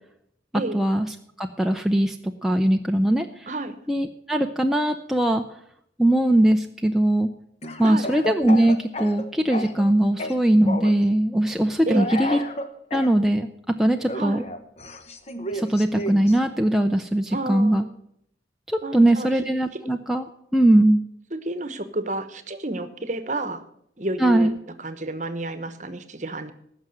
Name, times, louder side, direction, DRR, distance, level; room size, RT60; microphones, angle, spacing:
voice 1, 0.7-1.1 1.4-3.5 3.9-5.4 6.0-7.3 7.8-12.4 12.9-14.4 15.5-17.8 18.7-21.1 24.2-24.5, right 1 dB, ahead, 3 dB, 0.4 m, -21 dB
voice 2, 3.5-3.8 7.8-8.0 11.9-12.2 14.1-14.5 17.3-17.9 18.8-19.3 19.7-19.8 21.3-23.6 24.0-24.5 24.8-26.5, right 2 dB, 40° right, 11 dB, 1.0 m, -30 dB
Speech / Cough, 7.6-9.9 10.2-11.0 11.9-13.1 14.1-16.4, left 1 dB, 35° left, 0.9 m, -32 dB
15.5 x 6.1 x 7.7 m, 0.73 s
head